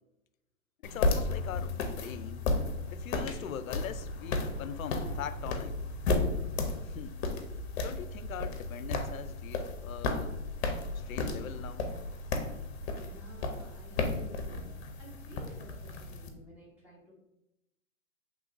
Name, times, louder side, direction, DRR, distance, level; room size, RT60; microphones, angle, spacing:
voice 1, 0.8-2.5 2.9-5.8 6.9-7.2 7.8-10.4 10.9-11.9, left 9 dB, 80° left, 0.5 m, -42 dB
sound 1, 0.8-16.3, left 3 dB, 50° left, 0.8 m, -34 dB
voice 2, 12.9-14.7 15.0-17.1, equal, 5° right, 1.4 m, -53 dB
6.2 x 3.3 x 2.6 m
hypercardioid pair, 130°, 41 cm